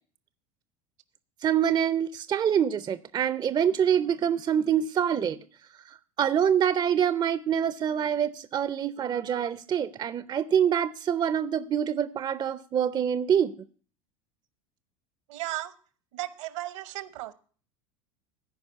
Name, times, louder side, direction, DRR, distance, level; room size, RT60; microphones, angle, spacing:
voice 1, 1.4-5.4 6.2-13.5, right 8 dB, 25° right, 16 dB, 0.5 m, -25 dB
voice 2, 15.3-15.7 16.1-17.3, right 16 dB, 65° right, 16 dB, 0.9 m, -35 dB
14.0 x 5.1 x 8.1 m, 0.43 s
figure-of-eight pair, 80°, 17 cm